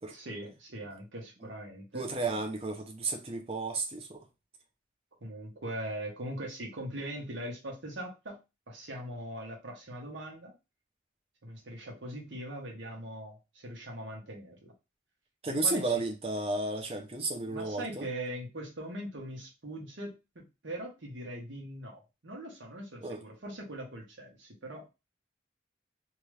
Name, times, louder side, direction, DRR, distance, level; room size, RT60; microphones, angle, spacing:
voice 1, 0.1-2.3 5.2-8.4 8.7-10.5 11.4-14.7 15.4-15.9 17.5-24.9, right 1 dB, 80° right, 1.1 m, -41 dB
voice 2, 1.9-4.2 15.4-18.1 23.0-23.2, right 3 dB, 30° right, 0.6 m, -33 dB
2.9 x 2.4 x 3.2 m
head